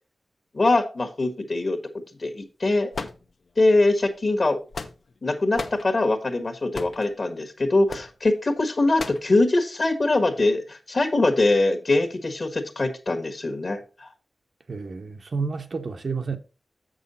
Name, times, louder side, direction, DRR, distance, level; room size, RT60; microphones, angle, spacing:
voice 1, 0.5-1.8 2.2-2.9 3.6-4.6 5.2-14.1, left 2 dB, 45° left, 1.4 m, -22 dB
sound 1, 2.9-3.7 4.4-5.2 5.5-5.9 6.7-7.1 7.9-8.1 9.0-9.3, left 4 dB, 65° left, 0.8 m, -34 dB
voice 2, 14.7-16.4, right 4 dB, 55° right, 0.8 m, -30 dB
7.6 x 6.3 x 4.1 m
wide cardioid pair, 110°, 0 cm